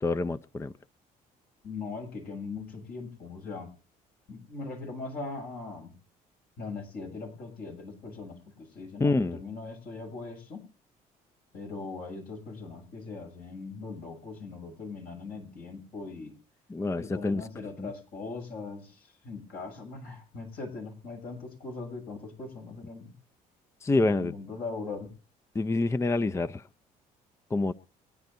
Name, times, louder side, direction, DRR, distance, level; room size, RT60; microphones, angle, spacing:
voice 1, 0.0-0.7 9.0-9.4 16.7-17.5 17.8-17.9 23.8-24.3 25.5-26.7 27.5-27.7, left 3 dB, 15° left, 11 dB, 0.5 m, -27 dB
voice 2, 1.6-3.7 4.3-5.9 6.6-10.6 11.5-16.3 17.0-23.1 23.9-25.1, left 3 dB, 70° left, 2 dB, 7.3 m, -40 dB
24.0 x 10.5 x 2.7 m, 0.34 s
supercardioid pair, 85°, 16 cm